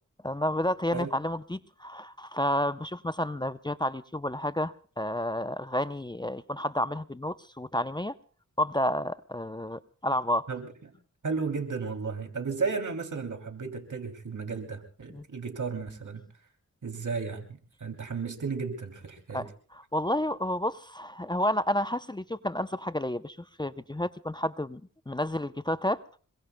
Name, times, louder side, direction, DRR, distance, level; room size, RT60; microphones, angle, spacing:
voice 1, 0.2-8.2 8.6-10.5 15.1-15.2 19.3-24.8 25.1-26.0, left 1 dB, 15° left, 13 dB, 0.7 m, -30 dB
voice 2, 11.2-16.2 16.8-19.4, right 5 dB, 70° right, 4 dB, 3.1 m, -34 dB
26.5 x 22.5 x 2.3 m, 0.41 s
cardioid pair, 50°, 32 cm